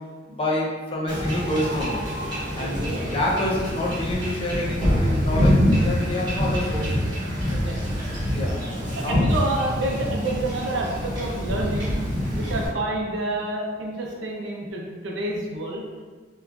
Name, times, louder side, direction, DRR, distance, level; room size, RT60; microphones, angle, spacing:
voice 1, 0.3-2.0 2.6-2.8 3.1-7.1 8.3-8.6 9.0-9.3 12.3-12.6, left 1 dB, 30° left, -4 dB, 0.5 m, -27 dB
Wind / Ocean / Boat Water vehicle, 1.1-12.7, equal, 25° right, 0.9 m, -25 dB
voice 2, 2.6-3.1 7.5-7.8 9.0-15.9, right 2 dB, 85° right, -2 dB, 0.5 m, -29 dB
2.9 x 2.3 x 2.3 m, 1.5 s
head